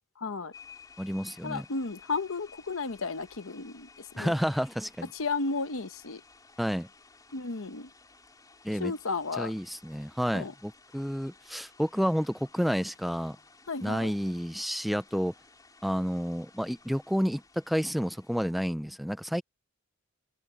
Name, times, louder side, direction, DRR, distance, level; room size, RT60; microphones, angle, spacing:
voice 1, 0.2-0.5 1.4-4.3 5.1-6.2 7.3-7.9 8.8-9.5 10.3-10.5 13.7-14.1, left 4 dB, 70° left, 1.0 m, -33 dB
sound 1, 0.5-18.5, left 5 dB, 15° left, 3.6 m, -56 dB
voice 2, 1.0-1.6 4.2-5.1 6.6-6.9 8.6-8.9 9.4-13.4 13.8-15.3 15.8-19.4, equal, ahead, 0.4 m, -30 dB
head